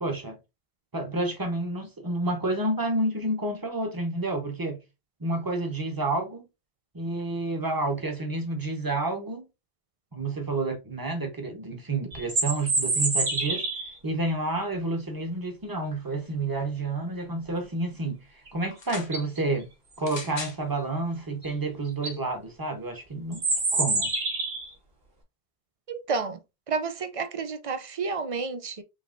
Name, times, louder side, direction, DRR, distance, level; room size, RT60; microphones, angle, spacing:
voice 1, 0.0-0.4 0.9-4.8 5.2-6.5 6.9-9.4 10.1-13.6 14.0-19.7 20.0-23.4 23.7-24.1, right 2 dB, 20° right, 1.0 m, -29 dB
sound 1, 12.1-13.9 18.5-18.6 19.0-19.4 21.4-21.5 21.9-22.2 23.3-24.7, right 3 dB, 70° right, 1.6 m, -27 dB
sound 2, 18.7-19.1 20.0-20.6 21.5-21.6, left 4 dB, 30° left, 0.7 m, -39 dB
voice 2, 25.9-26.4 26.7-28.8, right 4 dB, 45° right, 0.4 m, -30 dB
5.0 x 3.1 x 2.5 m
omnidirectional pair, 1.0 m